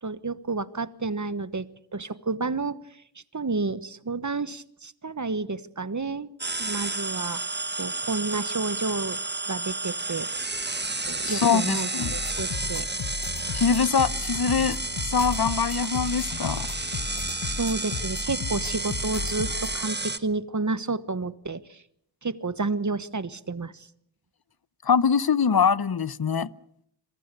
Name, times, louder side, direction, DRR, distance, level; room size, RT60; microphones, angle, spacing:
voice 1, 0.0-1.7 1.9-2.8 3.3-6.3 6.6-7.4 7.8-9.2 9.5-10.3 11.1-12.9 17.5-21.8 22.2-23.9, right 3 dB, 40° right, 1.2 m, -30 dB
sound 1, 6.4-20.2, right 3 dB, 25° right, 1.3 m, -31 dB
voice 2, 11.2-12.1 13.5-16.7 24.8-26.5, left 6 dB, 55° left, 0.9 m, -23 dB
sound 2, 12.0-19.8, left 6 dB, 85° left, 1.2 m, -35 dB
27.0 x 23.0 x 6.8 m
wide cardioid pair, 65°, 45 cm